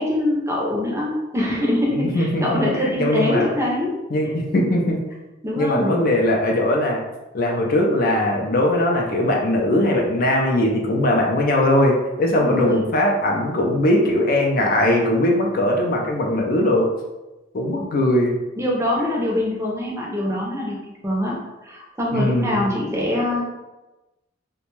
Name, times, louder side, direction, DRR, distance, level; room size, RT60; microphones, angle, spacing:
voice 1, 0.0-3.9 5.4-6.0 12.3-12.8 18.6-20.8 21.0-21.3 21.6-23.4, left 1 dB, 15° right, -3 dB, 0.5 m, -23 dB
voice 2, 1.9-3.5 4.1-5.0 5.6-7.0 7.3-16.9 17.5-18.3 22.1-22.6, left 1 dB, 45° left, 0 dB, 0.4 m, -20 dB
2.5 x 2.1 x 3.0 m, 1.0 s
head